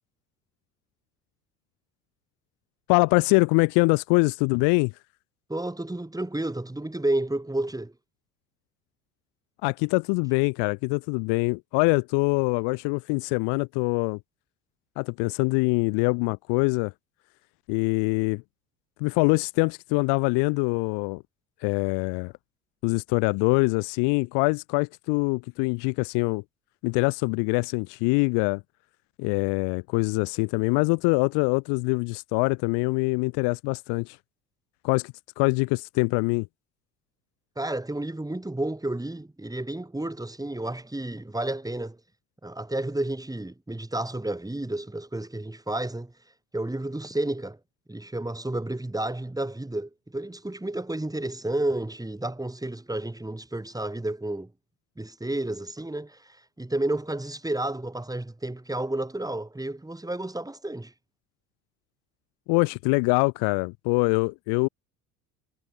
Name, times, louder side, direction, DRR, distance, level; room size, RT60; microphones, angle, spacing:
voice 1, 2.9-4.9 9.6-14.2 15.0-16.9 17.7-18.4 19.0-21.2 21.6-22.3 22.8-26.4 26.8-28.6 29.2-34.2 34.8-36.5 62.5-64.7, left 33 dB, 55° left, 2.1 m, -24 dB
voice 2, 5.5-7.9 37.6-42.0 42.4-46.1 46.5-47.6 47.9-54.5 55.0-60.9, right 1 dB, 5° right, 6.0 m, -31 dB
figure-of-eight pair, 60°, 48 cm